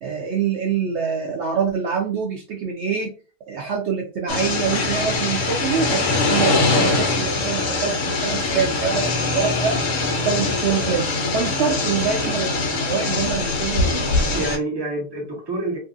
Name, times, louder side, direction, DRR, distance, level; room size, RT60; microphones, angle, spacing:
voice 1, 0.0-3.1 3.5-9.8 10.1-14.3, right 6 dB, 75° right, 0 dB, 0.6 m, -25 dB
sound 1, 4.3-14.6, left 3 dB, 65° left, 0.8 m, -22 dB
voice 2, 13.8-15.8, right 2 dB, 20° right, -3 dB, 0.8 m, -28 dB
2.7 x 2.6 x 2.5 m, 0.36 s
omnidirectional pair, 1.8 m